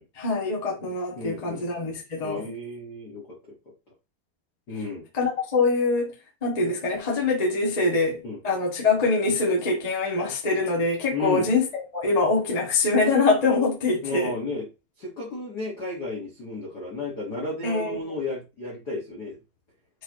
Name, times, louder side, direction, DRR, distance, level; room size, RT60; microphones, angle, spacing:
voice 1, 0.1-2.5 5.2-6.1 6.4-8.2 8.4-11.7 11.9-14.4 17.6-18.0, left 3 dB, 40° left, 0.5 m, -24 dB
voice 2, 0.8-1.7 2.2-3.6 4.7-5.1 8.2-8.4 11.1-11.5 14.0-14.7 15.0-19.4, left 3 dB, 60° left, 1.0 m, -33 dB
7.8 x 4.4 x 3.0 m
omnidirectional pair, 4.8 m